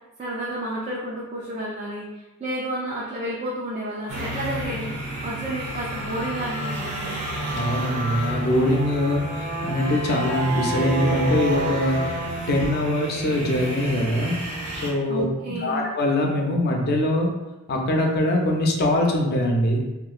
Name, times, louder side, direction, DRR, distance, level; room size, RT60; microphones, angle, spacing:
voice 1, 0.2-2.1 2.4-4.9 5.2-7.2 15.1-15.9, right 1 dB, 30° right, -6 dB, 0.4 m, -31 dB
sound 1, 4.1-14.9, right 1 dB, 90° right, 0.8 m, -29 dB
voice 2, 7.5-9.2 9.6-12.0 12.5-14.3 14.8-15.2 15.6-17.3 17.7-19.8, left 1 dB, 45° left, 1 dB, 0.4 m, -22 dB
2.9 x 2.5 x 2.3 m, 1.1 s
head